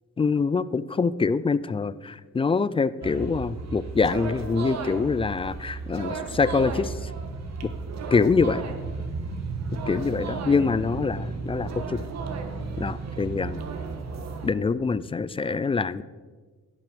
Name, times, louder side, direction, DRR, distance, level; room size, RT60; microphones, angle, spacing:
voice 1, 0.2-7.1 7.6-7.7 8.1-8.6 9.9-12.0 12.8-13.6 14.4-16.0, left 4 dB, 20° left, 16 dB, 0.3 m, -25 dB
sound 1, 3.0-14.5, right 4 dB, 60° right, 1.3 m, -34 dB
15.5 x 5.9 x 5.1 m, 1.4 s
cardioid pair, 90°, 30 cm